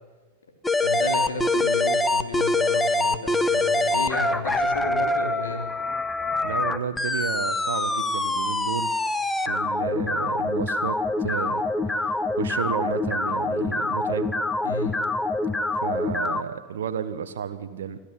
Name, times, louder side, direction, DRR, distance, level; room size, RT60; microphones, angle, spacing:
sound 1, 0.6-16.4, left 2 dB, 10° left, 1.0 m, -25 dB
voice 1, 0.8-5.7 14.6-14.9, left 3 dB, 65° left, 4 dB, 3.5 m, -32 dB
voice 2, 6.4-9.0 9.5-11.6 12.0-12.1 12.4-14.3 15.8-18.0, right 7 dB, 65° right, 10 dB, 1.0 m, -32 dB
27.5 x 11.5 x 9.2 m, 1.3 s
figure-of-eight pair, 90°, 0 cm